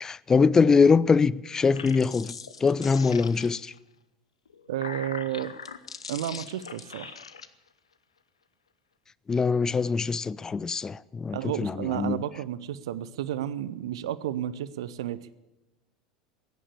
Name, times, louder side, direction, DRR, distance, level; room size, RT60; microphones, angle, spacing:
voice 1, 0.0-2.3 2.6-3.7 9.3-12.2, left 5 dB, 20° left, 0.4 m, -23 dB
sound 1, 1.5-3.8 4.5-7.5, left 6 dB, 80° left, 0.8 m, -41 dB
voice 2, 4.7-5.5 6.1-7.2 11.3-15.2, right 11 dB, 65° right, 0.7 m, -32 dB
16.0 x 10.0 x 8.3 m
figure-of-eight pair, 75°, 3 cm